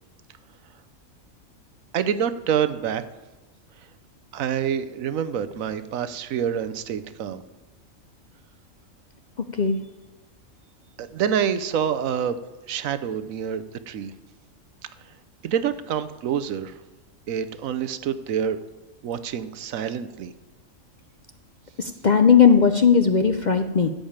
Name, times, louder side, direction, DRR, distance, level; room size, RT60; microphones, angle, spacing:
voice 1, 1.9-3.0 4.3-7.4 11.0-12.4 12.7-14.1 15.4-16.7 17.3-18.6 19.0-20.3, right 8 dB, 80° right, 12 dB, 1.1 m, -27 dB
voice 2, 9.4-9.8 21.8-23.9, left 6 dB, 50° left, 8 dB, 0.5 m, -18 dB
13.5 x 5.2 x 8.8 m, 1.1 s
omnidirectional pair, 1.4 m